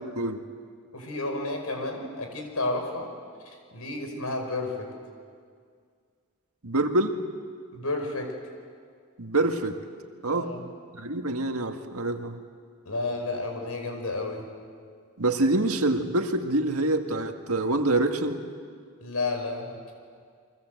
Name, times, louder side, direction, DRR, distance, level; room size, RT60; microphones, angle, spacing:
voice 1, 0.9-3.1 3.5-4.9 7.7-8.4 10.3-10.7 12.9-14.5 19.0-19.8, left 2 dB, 85° left, 4 dB, 5.5 m, -31 dB
voice 2, 6.6-7.2 9.2-9.8 10.2-10.5 10.9-12.4 15.2-18.4, right 2 dB, 80° right, 5 dB, 2.0 m, -26 dB
29.5 x 23.5 x 8.1 m, 2.1 s
head